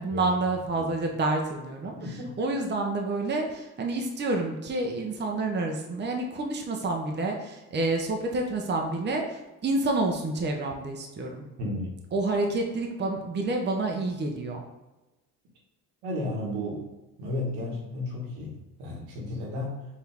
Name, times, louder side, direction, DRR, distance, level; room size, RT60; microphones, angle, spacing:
voice 1, 0.0-11.5 12.1-14.6, right 2 dB, 25° right, 2 dB, 0.7 m, -29 dB
voice 2, 2.0-2.3 11.6-11.9 16.0-16.8 17.2-19.9, left 1 dB, 80° right, -2 dB, 1.4 m, -33 dB
4.7 x 2.8 x 3.4 m, 1.0 s
supercardioid pair, 75°, 39 cm